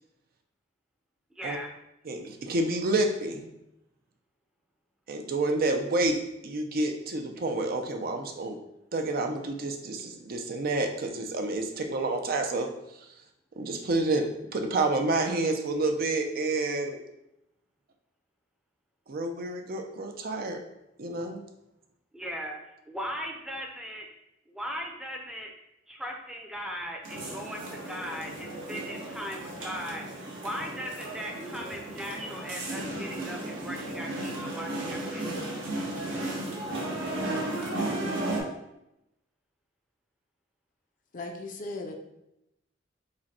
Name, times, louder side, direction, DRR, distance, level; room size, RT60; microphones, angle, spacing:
voice 1, 1.3-1.7 22.1-22.6 22.9-24.1 24.5-25.5 25.9-35.3, equal, 5° right, 0 dB, 0.6 m, -38 dB
voice 2, 2.0-3.5 5.1-6.2 6.4-8.6 8.9-12.7 13.0-13.1 13.6-17.0 19.1-20.6 21.0-21.4, right 2 dB, 50° right, 4 dB, 0.5 m, -29 dB
sound 1, 27.0-38.4, right 1 dB, 80° right, 1.2 m, -34 dB
voice 3, 41.1-41.9, left 2 dB, 45° left, 4 dB, 0.5 m, -37 dB
4.9 x 2.2 x 4.2 m, 0.87 s
head